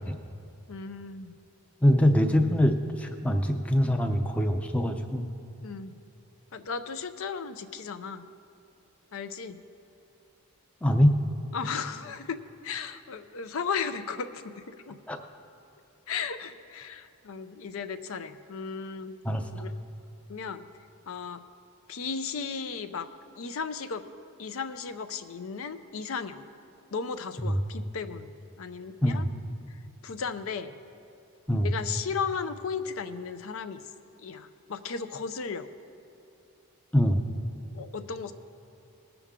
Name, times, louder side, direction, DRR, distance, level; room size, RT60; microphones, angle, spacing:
voice 1, 0.7-1.4 5.6-6.0 6.5-8.3 9.1-9.6 11.5-12.4 12.6-15.0 16.1-19.2 19.5-19.7 20.3-20.6 21.1-21.4 21.9-23.1 23.4-24.0 24.4-26.4 26.9-29.3 29.7-30.8 31.6-33.8 34.2-35.7 37.7-38.3, left 5 dB, 70° left, 10 dB, 0.5 m, -35 dB
voice 2, 1.8-5.2 10.8-11.2 15.1-15.2 19.2-19.6 27.4-27.6 29.0-29.3 31.5-31.7 36.9-37.2, equal, 5° left, 4 dB, 0.5 m, -23 dB
19.0 x 7.0 x 3.7 m, 2.9 s
head